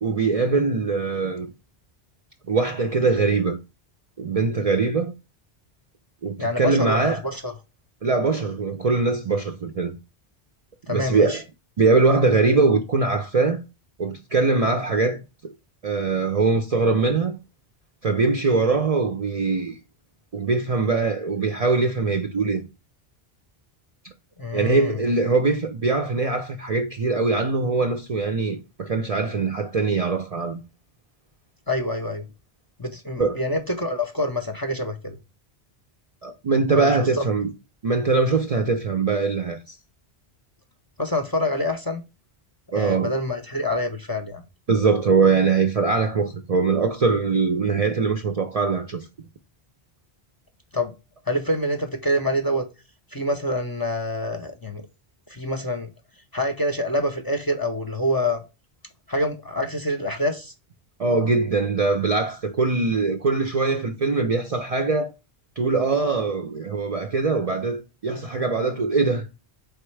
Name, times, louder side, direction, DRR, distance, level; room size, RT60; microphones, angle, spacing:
voice 1, 0.0-1.5 2.5-3.6 4.2-5.1 6.2-7.2 8.0-9.9 10.9-11.4 11.8-13.6 14.0-15.5 15.8-17.4 18.0-19.8 20.3-22.6 24.5-30.6 33.2-33.4 36.2-37.5 37.8-39.8 42.7-43.1 44.7-49.1 61.0-65.1 65.6-69.3, right 4 dB, 50° right, 0.5 m, -22 dB
voice 2, 6.4-7.5 10.9-11.4 24.4-25.0 31.7-32.2 32.8-35.2 36.7-37.2 41.0-42.0 42.7-44.4 50.7-50.9 51.3-52.6 53.1-54.8 55.3-55.9 56.3-58.4 59.1-60.5, left 1 dB, 25° left, 0.6 m, -26 dB
4.3 x 3.4 x 3.2 m
omnidirectional pair, 1.1 m